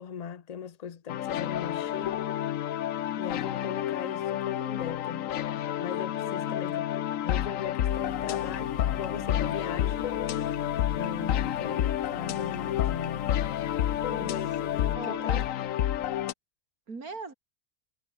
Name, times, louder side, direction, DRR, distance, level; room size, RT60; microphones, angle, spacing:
voice 1, 0.0-2.2 3.2-5.3 5.8-10.1 11.0-13.3 14.2-15.4, left 8 dB, 35° left, 0.7 m, -39 dB
sound 1, 1.1-16.3, left 11 dB, 70° left, 1.1 m, -30 dB
voice 2, 6.2-6.8 11.0-11.5 14.1-14.4 14.9-15.4 16.9-17.3, right 4 dB, 90° right, 3.6 m, -42 dB
sound 2, 7.9-14.9, left 5 dB, 85° left, 2.9 m, -41 dB
omnidirectional pair, 1.5 m